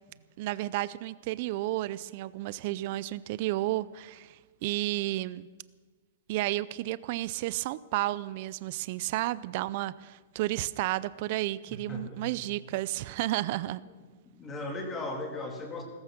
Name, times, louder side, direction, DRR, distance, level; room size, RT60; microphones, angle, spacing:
voice 1, 0.4-5.5 6.3-13.8, right 16 dB, 45° right, 18 dB, 0.4 m, -32 dB
voice 2, 11.7-12.4 14.0-15.8, left 2 dB, 15° left, 2 dB, 2.4 m, -38 dB
15.5 x 14.5 x 6.0 m, 1.3 s
hypercardioid pair, 150°, 0 cm